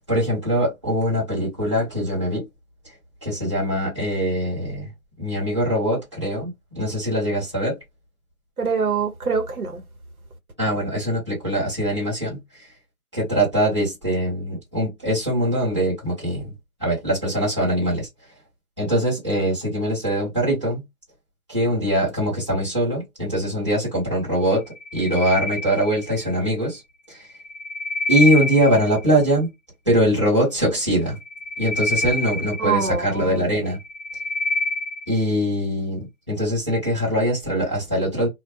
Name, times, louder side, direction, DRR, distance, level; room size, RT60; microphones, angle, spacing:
voice 1, 0.1-2.4 3.2-4.9 5.2-7.8 10.6-12.4 13.1-16.5 16.8-18.1 18.8-20.8 21.5-24.6 24.9-26.8 27.1-27.3 28.1-29.5 29.8-31.2 31.6-33.8 35.1-38.3, equal, 20° right, 1.2 m, -22 dB
voice 2, 8.6-9.8 32.6-33.4, right 5 dB, 75° right, 0.9 m, -24 dB
sound 1, 24.7-26.3 27.3-29.1 31.1-33.2 33.7-35.2, left 2 dB, 55° left, 0.7 m, -27 dB
2.4 x 2.1 x 2.6 m
figure-of-eight pair, 175°, 44 cm